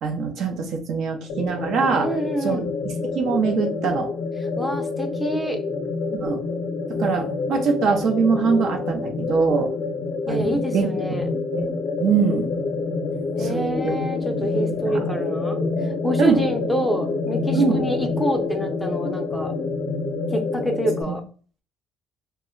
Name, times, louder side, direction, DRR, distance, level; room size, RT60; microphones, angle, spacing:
voice 1, 0.0-2.1 2.4-4.1 6.1-6.4 6.9-9.7 10.3-10.9 11.5-11.7 12.0-12.5 13.4-14.5 14.8-14.9 16.2-16.4 17.5-17.8 21.1-21.2, right 5 dB, 65° right, 4 dB, 0.6 m, -23 dB
sound 1, 1.3-21.0, left 3 dB, 60° left, 0.6 m, -27 dB
voice 2, 2.0-2.7 4.4-5.6 10.3-11.3 13.4-19.5 20.3-21.2, equal, 5° left, 4 dB, 0.5 m, -27 dB
2.2 x 2.1 x 3.7 m, 0.39 s
cardioid pair, 95°, 0 cm